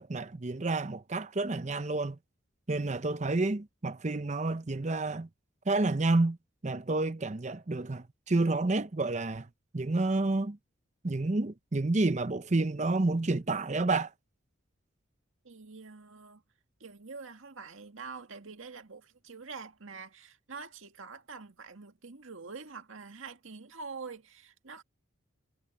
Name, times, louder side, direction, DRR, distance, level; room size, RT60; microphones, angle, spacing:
voice 1, 0.0-2.2 2.7-5.3 5.7-6.4 6.6-9.5 9.7-10.6 11.0-14.1, right 2 dB, 35° right, 0.7 m, -29 dB
voice 2, 15.5-16.4 16.8-24.8, right 4 dB, 85° right, 1.9 m, -45 dB
head